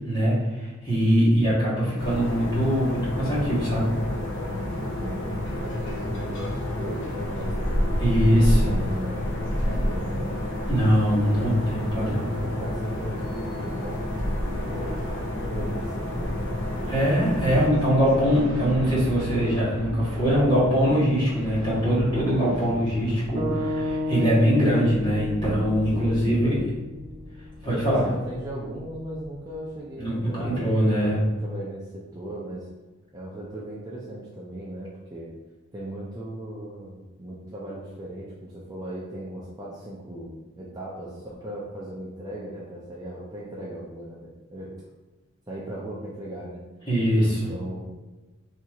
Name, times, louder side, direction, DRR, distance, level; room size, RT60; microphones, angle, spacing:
voice 1, 0.0-3.9 8.0-8.8 10.7-12.3 16.9-26.5 27.6-28.0 30.0-31.2 46.8-47.5, equal, 20° left, -9 dB, 1.3 m, -22 dB
sound 1, 2.0-17.7, left 1 dB, 55° left, 0.7 m, -29 dB
voice 2, 4.8-10.3 11.2-17.2 17.9-18.3 22.4-23.0 25.9-26.5 27.7-32.7 33.1-35.3 35.7-44.8 45.5-46.6 47.1-47.8, right 1 dB, 15° right, -6 dB, 0.4 m, -38 dB
sound 2, 17.2-29.7, right 1 dB, 80° right, 0.6 m, -37 dB
sound 3, 23.3-27.6, left 2 dB, 5° left, 1.0 m, -32 dB
4.3 x 2.8 x 2.4 m, 1.2 s
head